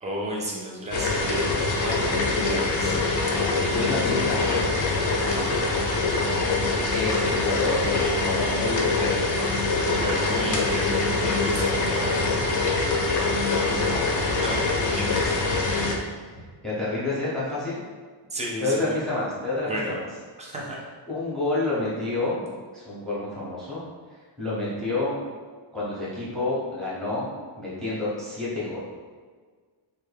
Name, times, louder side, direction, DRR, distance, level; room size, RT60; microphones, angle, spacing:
voice 1, 0.0-3.0 9.9-12.3 14.3-15.4 18.3-18.9 19.6-20.0 20.4-20.8, equal, 15° right, -3 dB, 0.5 m, -32 dB
sound 1, 0.9-15.9, left 3 dB, 40° left, 0.5 m, -24 dB
voice 2, 3.7-6.1 6.9-9.3 13.6-14.1 16.2-17.8 18.6-20.0 21.1-25.1 25.7-28.8, left 2 dB, ahead, -10 dB, 0.8 m, -29 dB
3.4 x 2.3 x 3.3 m, 1.5 s
wide cardioid pair, 155°, 49 cm